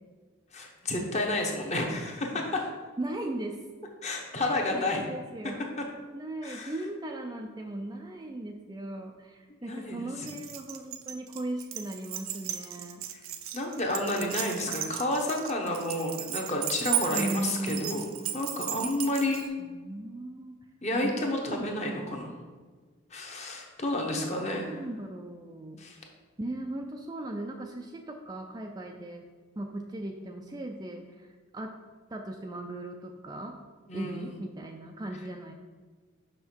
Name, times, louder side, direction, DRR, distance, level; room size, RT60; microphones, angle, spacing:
voice 1, 0.5-2.7 4.0-5.0 6.4-6.7 9.6-10.1 13.5-18.1 18.3-19.4 20.8-22.3 23.1-24.7 25.8-26.0 33.9-34.3, left 1 dB, 30° left, 1 dB, 1.0 m, -30 dB
voice 2, 3.0-3.6 4.4-5.7 6.1-13.1 17.1-18.3 19.6-20.6 21.0-22.3 24.0-24.3 24.7-25.8 26.4-29.2 29.6-31.8 32.1-33.6 33.9-35.5, right 1 dB, 20° right, 3 dB, 0.3 m, -38 dB
Keys jangling, 10.3-19.5, right 11 dB, 75° right, 0.5 m, -35 dB
5.5 x 5.5 x 4.4 m, 1.4 s
head